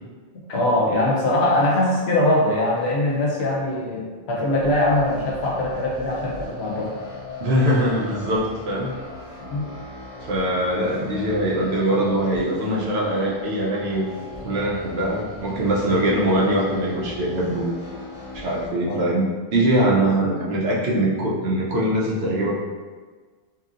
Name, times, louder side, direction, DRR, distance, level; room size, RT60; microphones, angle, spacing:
voice 1, 0.5-6.9 9.5-9.7 18.8-19.1, left 1 dB, 85° left, -3 dB, 1.0 m, -22 dB
sound 1, 4.6-18.7, left 2 dB, 35° right, 1.0 m, -38 dB
voice 2, 7.4-8.9 10.2-14.1 14.4-17.7 18.3-22.6, right 1 dB, 80° right, -3 dB, 0.9 m, -22 dB
2.8 x 2.7 x 2.4 m, 1.4 s
omnidirectional pair, 1.1 m